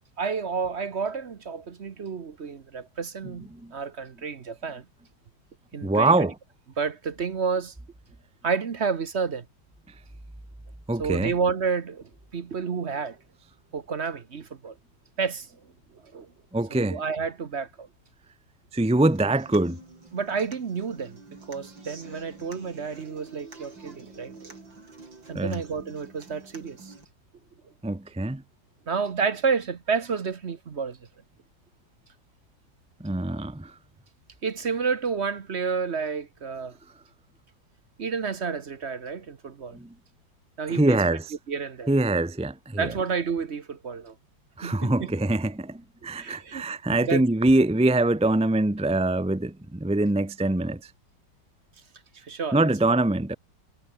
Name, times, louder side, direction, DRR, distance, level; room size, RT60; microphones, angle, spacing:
voice 1, 0.2-4.8 5.7-6.3 6.8-7.7 8.4-9.4 11.0-13.2 13.7-14.7 15.2-15.5 16.1-16.3 16.7-17.9 20.1-21.2 21.5-24.6 25.3-26.9 28.9-31.0 34.4-36.7 38.0-39.8 40.6-41.0 41.5-41.9 42.8-44.1 44.6-45.1 46.2-46.6 46.9-47.2 52.1-52.7, right 5 dB, 45° right, 1.1 m, -30 dB
voice 2, 5.8-6.3 10.9-11.3 16.5-17.0 18.7-19.8 25.3-25.6 27.8-28.4 33.0-33.7 39.7-39.9 40.7-41.2 41.9-42.9 44.6-50.8 52.5-53.3, right 2 dB, 10° right, 0.4 m, -24 dB
Human voice / Acoustic guitar, 19.1-27.0, right 3 dB, 80° right, 5.7 m, -48 dB
omnidirectional pair, 2.0 m